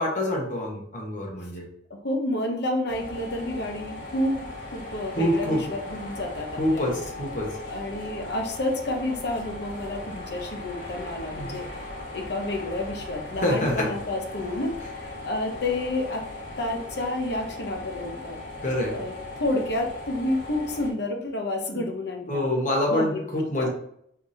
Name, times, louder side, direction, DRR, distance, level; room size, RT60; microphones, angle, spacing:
voice 1, 0.0-1.6 5.1-5.6 6.6-6.9 7.2-7.5 11.3-11.6 13.4-13.9 18.6-19.0 22.3-23.7, left 1 dB, 45° left, -1 dB, 1.1 m, -25 dB
voice 2, 1.9-7.0 7.6-11.7 12.1-16.2 16.6-18.4 18.9-22.4 22.9-23.3 23.6-23.7, left 1 dB, 60° left, 3 dB, 0.8 m, -30 dB
sound 1, 2.9-20.9, left 2 dB, 80° left, 1.8 m, -38 dB
4.6 x 3.5 x 2.7 m, 0.70 s
head